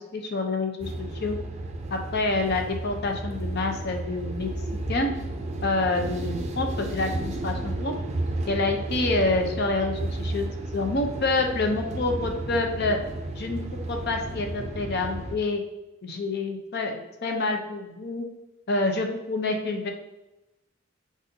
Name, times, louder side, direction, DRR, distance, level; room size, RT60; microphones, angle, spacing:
voice 1, 0.0-1.4 1.9-4.5 4.9-5.1 5.6-7.9 8.5-10.5 10.7-13.0 13.4-13.6 13.9-15.6 16.0-18.2 18.7-19.9, left 2 dB, 55° left, 4 dB, 0.7 m, -27 dB
sound 1, 0.8-15.4, right 2 dB, 35° right, 0.5 m, -33 dB
4.7 x 4.1 x 2.7 m, 0.95 s
head